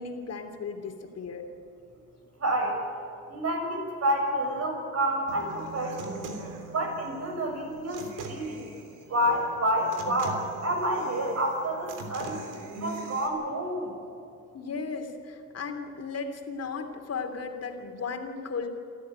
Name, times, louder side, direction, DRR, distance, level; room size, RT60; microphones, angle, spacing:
voice 1, 0.0-1.5 14.5-18.7, left 5 dB, 55° left, 4 dB, 3.0 m, -35 dB
voice 2, 2.4-2.8 3.3-6.3 6.7-8.7 9.1-12.4 12.8-13.9, right 1 dB, 55° right, 2 dB, 6.6 m, -29 dB
Human voice / Acoustic guitar, 5.3-13.3, right 3 dB, 90° right, 3.3 m, -41 dB
27.5 x 13.5 x 9.7 m, 2.6 s
cardioid pair, 90°, 30 cm